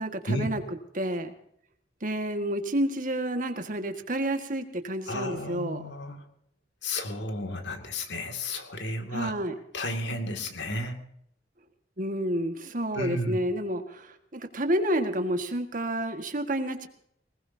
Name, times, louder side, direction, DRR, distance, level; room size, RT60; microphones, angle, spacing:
voice 1, 0.0-1.3 2.0-5.8 9.1-9.6 12.0-16.9, right 1 dB, 50° right, 6 dB, 1.8 m, -30 dB
voice 2, 5.1-6.2 6.8-9.3 9.7-11.0 12.9-13.4, left 1 dB, 85° left, 5 dB, 2.5 m, -32 dB
20.0 x 20.0 x 2.8 m, 0.71 s
head